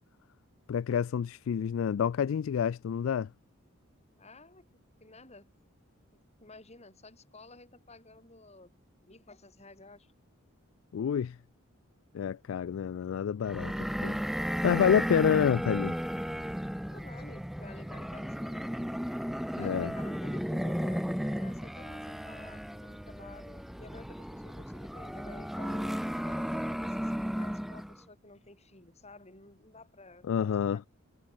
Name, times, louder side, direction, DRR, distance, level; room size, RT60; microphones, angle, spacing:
voice 1, 0.7-3.3 10.9-11.4 12.1-13.7 14.0-14.2 14.4-15.9 19.6-19.9 30.3-30.8, left 8 dB, 70° left, 0.3 m, -28 dB
voice 2, 4.2-4.6 5.0-5.5 6.4-8.7 9.0-10.1 16.9-18.8 19.6-30.9, left 2 dB, 30° left, 6.9 m, -52 dB
sound 1, 13.4-28.0, equal, ahead, 0.6 m, -34 dB
head